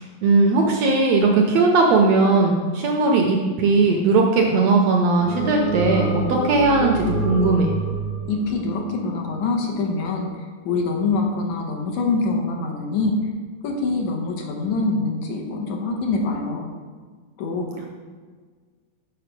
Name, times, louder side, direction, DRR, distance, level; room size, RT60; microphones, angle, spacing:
voice 1, 0.0-7.7, right 3 dB, 75° right, 1 dB, 1.6 m, -18 dB
sound 1, 5.2-9.6, right 1 dB, 55° left, 1.4 m, -27 dB
voice 2, 8.3-13.3 13.6-16.7 17.4-17.8, left 3 dB, 75° left, 1 dB, 2.2 m, -25 dB
6.9 x 5.7 x 5.1 m, 1.5 s
omnidirectional pair, 3.6 m